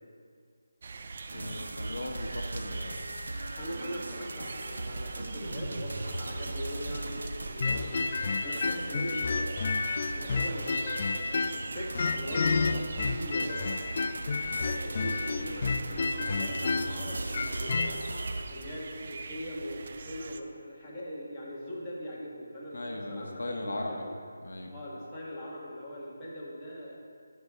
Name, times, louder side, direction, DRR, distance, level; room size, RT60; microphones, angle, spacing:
sound 1, 0.8-20.4, right 4 dB, 45° right, 0.4 m, -44 dB
voice 1, 1.3-3.0 22.7-24.0 24.4-24.7, left 2 dB, 70° left, 2 dB, 0.9 m, -38 dB
sound 2, 1.3-18.5, right 2 dB, 75° right, 0.8 m, -39 dB
voice 2, 3.6-8.1 8.4-9.5 10.1-13.8 14.5-18.0 18.5-24.1 24.7-27.0, equal, 10° left, -9 dB, 1.5 m, -40 dB
sound 3, 7.6-11.7 12.0-17.9, left 4 dB, 45° left, 0.3 m, -30 dB
11.0 x 5.6 x 3.6 m, 2.2 s
figure-of-eight pair, 165°, 0 cm